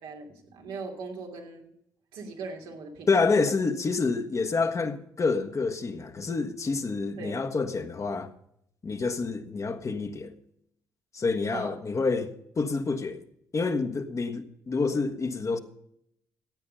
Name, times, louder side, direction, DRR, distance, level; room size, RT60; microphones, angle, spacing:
voice 1, 0.0-1.7 2.1-3.2 7.2-7.4 11.5-11.8, right 4 dB, 80° right, 2.8 m, -39 dB
voice 2, 3.1-8.3 8.8-10.3 11.1-12.3 12.6-13.2 13.5-15.6, left 4 dB, 35° left, 1.3 m, -28 dB
15.5 x 8.6 x 5.5 m
supercardioid pair, 65°, 9 cm